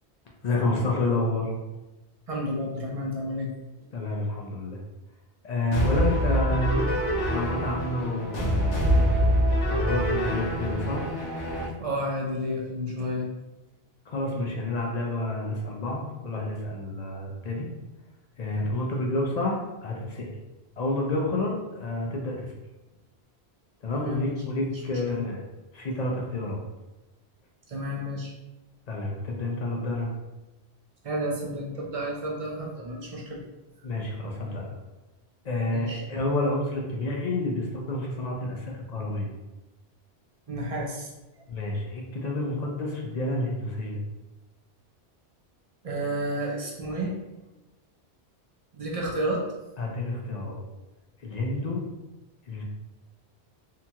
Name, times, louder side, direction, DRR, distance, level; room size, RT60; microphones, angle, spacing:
voice 1, 0.4-1.5 3.9-4.8 5.4-6.8 7.3-9.1 9.7-11.0 14.1-17.7 18.4-20.3 20.8-22.5 23.8-25.5 25.7-26.6 28.9-30.1 33.8-34.8 35.4-39.3 41.5-44.0 49.8-50.6 51.2-51.8 52.5-52.6, left 2 dB, 55° left, -1 dB, 0.5 m, -29 dB
voice 2, 2.3-3.5 11.8-13.3 23.9-24.7 25.1-25.2 27.7-28.3 31.0-33.4 35.7-36.0 40.5-41.1 45.8-47.1 48.7-49.4, equal, 60° right, -2 dB, 0.3 m, -31 dB
sound 1, 5.7-11.7, equal, 80° left, 0.9 m, -25 dB
2.8 x 2.3 x 2.7 m, 1.0 s
omnidirectional pair, 1.1 m